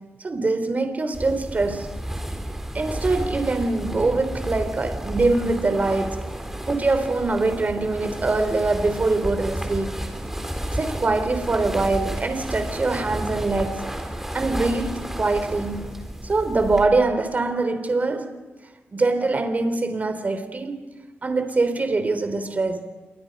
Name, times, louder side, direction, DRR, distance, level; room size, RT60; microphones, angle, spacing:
voice 1, 0.2-1.9 2.7-6.3 6.7-10.0 10.7-13.9 14.3-18.4 18.9-20.8 21.2-22.9, right 3 dB, 35° right, 3.4 m, -23 dB
sound 1, 1.1-16.8, right 1 dB, 10° right, 3.8 m, -32 dB
28.0 x 24.5 x 5.4 m
cardioid pair, 95°, 4 cm